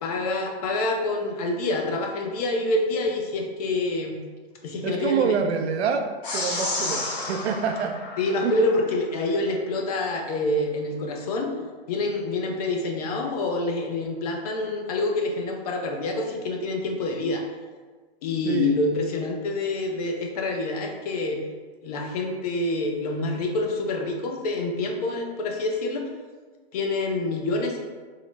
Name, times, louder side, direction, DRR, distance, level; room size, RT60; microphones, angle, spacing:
voice 1, 0.0-4.2 4.6-5.6 8.2-11.5 11.9-17.4 18.2-21.4 21.8-26.1 26.7-27.8, left 2 dB, 40° left, 2 dB, 0.5 m, -27 dB
voice 2, 4.8-8.0 8.4-8.6 18.4-18.8, right 6 dB, 80° right, 5 dB, 0.5 m, -26 dB
sound 1, 6.2-8.9, left 2 dB, 55° left, 1.1 m, -31 dB
3.8 x 2.0 x 3.1 m, 1.4 s
hypercardioid pair, 150°, 32 cm